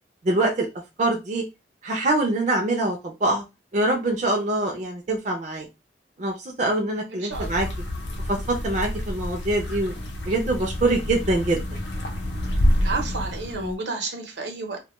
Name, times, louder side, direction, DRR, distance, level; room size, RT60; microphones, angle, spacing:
voice 1, 0.2-0.7 1.0-1.4 1.8-3.4 3.7-5.7 6.2-7.7 8.3-9.9 10.3-11.6, right 2 dB, 40° right, 1 dB, 0.4 m, -24 dB
voice 2, 7.1-7.5 12.8-14.8, right 3 dB, 80° right, 3 dB, 0.7 m, -31 dB
sound 1, 7.3-13.7, left 1 dB, 90° left, 0.6 m, -28 dB
2.2 x 2.2 x 2.9 m, 0.25 s
head